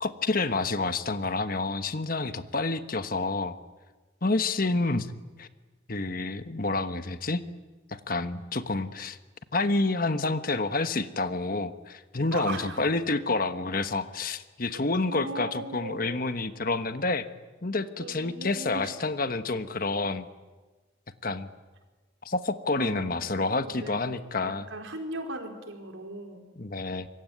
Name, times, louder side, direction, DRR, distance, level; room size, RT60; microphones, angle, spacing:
voice 1, 0.0-3.6 4.2-5.1 5.4-5.5 5.9-7.4 7.9-9.2 9.5-17.3 17.6-20.3 21.2-21.5 22.2-24.7 26.6-27.1, left 3 dB, 45° left, 10 dB, 1.2 m, -28 dB
voice 2, 12.3-12.9 15.1-16.2 18.0-18.9 22.8-24.0 24.4-26.4, right 2 dB, 80° right, 3 dB, 4.6 m, -38 dB
26.0 x 22.5 x 9.4 m, 1.3 s
head